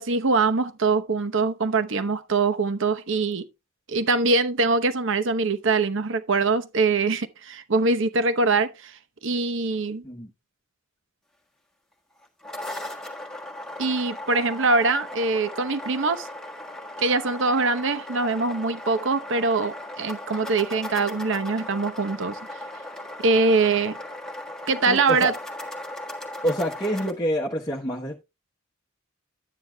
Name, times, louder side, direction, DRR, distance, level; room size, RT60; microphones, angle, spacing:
voice 1, 0.0-3.4 3.9-10.0 13.8-16.3 17.0-22.4 23.2-24.0 24.7-25.3, right 3 dB, 65° right, 0.9 m, -23 dB
sound 1, 12.2-27.1, left 1 dB, 5° left, 1.5 m, -37 dB
voice 2, 24.9-25.3 26.4-28.2, equal, 20° left, 1.0 m, -27 dB
11.5 x 9.5 x 2.2 m
head